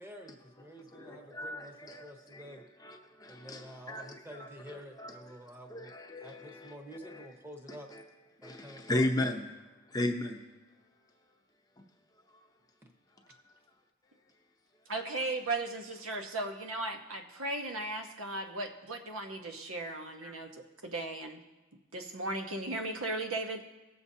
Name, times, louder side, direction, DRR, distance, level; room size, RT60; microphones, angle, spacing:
voice 1, 0.0-1.7 2.0-2.6 3.3-5.9 6.2-7.9 8.4-9.1 12.8-12.9 20.2-20.4, equal, 10° right, 1.0 m, -49 dB
voice 2, 0.7-7.3 7.7-8.0 8.4-9.4 9.9-10.5 12.3-12.4 13.3-13.4, left 1 dB, 20° left, 0.7 m, -37 dB
voice 3, 14.9-20.5 20.8-21.4 21.9-23.6, right 2 dB, 80° right, 1.0 m, -36 dB
19.5 x 6.9 x 2.7 m
head